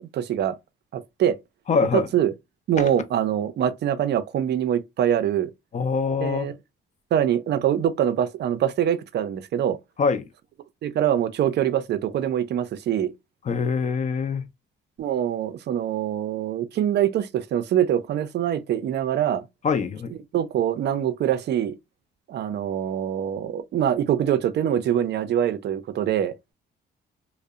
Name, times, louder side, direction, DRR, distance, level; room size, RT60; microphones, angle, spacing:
voice 1, 0.1-0.6 0.9-1.4 1.9-2.3 2.7-5.5 6.2-6.5 7.1-9.8 10.8-13.1 15.0-19.4 20.3-21.8 22.3-26.3, right 10 dB, 60° right, 0.4 m, -24 dB
voice 2, 1.7-2.1 2.8-2.9 5.7-6.5 10.0-10.3 13.5-14.5 19.6-20.1, left 5 dB, 40° left, 0.4 m, -24 dB
2.6 x 2.0 x 2.3 m
cardioid pair, 90°, 20 cm